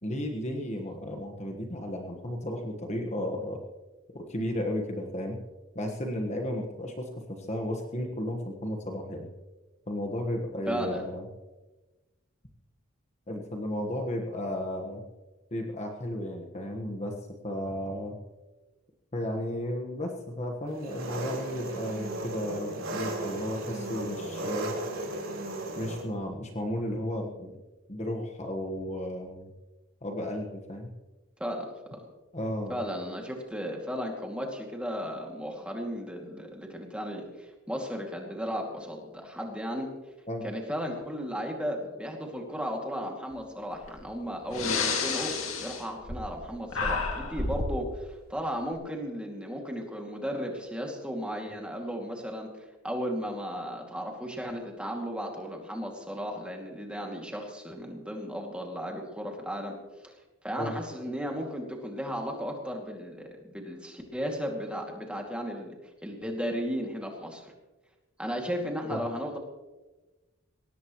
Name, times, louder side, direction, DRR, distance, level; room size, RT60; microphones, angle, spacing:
voice 1, 0.0-3.6 4.1-5.4 5.7-9.3 9.9-11.3 13.3-15.0 15.5-17.1 17.4-18.2 19.1-24.7 25.8-27.5 27.9-29.5 30.0-30.9 32.3-32.7 40.3-40.4 60.6-60.7 68.9-69.0, left 1 dB, 30° left, 2 dB, 1.4 m, -34 dB
voice 2, 10.7-11.0 31.4-31.7 32.7-39.9 40.4-45.3 45.6-59.7 60.0-60.1 60.4-65.8 66.0-67.5 68.2-69.4, equal, 5° right, 1 dB, 2.4 m, -35 dB
Engine, 20.8-26.0, right 1 dB, 65° right, 4.3 m, -35 dB
Breathing, 43.8-44.0 44.5-46.4 46.7-47.8, left 4 dB, 75° left, 2.5 m, -30 dB
21.0 x 18.0 x 3.1 m, 1.2 s
head